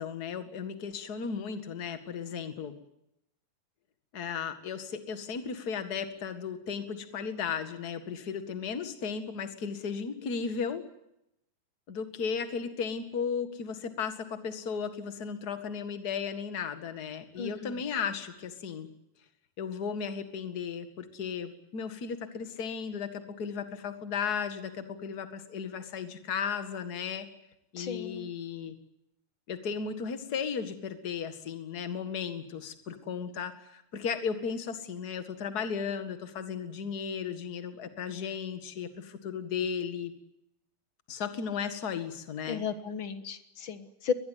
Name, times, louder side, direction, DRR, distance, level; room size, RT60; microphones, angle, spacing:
voice 1, 0.0-2.8 4.1-10.9 11.9-18.9 19.6-27.3 27.7-28.7 29.5-40.1 41.1-42.6, left 6 dB, 35° left, 9 dB, 1.9 m, -35 dB
voice 2, 17.4-17.8 27.8-28.3 42.5-44.1, left 6 dB, 50° left, 11 dB, 1.6 m, -34 dB
23.5 x 20.5 x 9.3 m, 0.83 s
omnidirectional pair, 3.9 m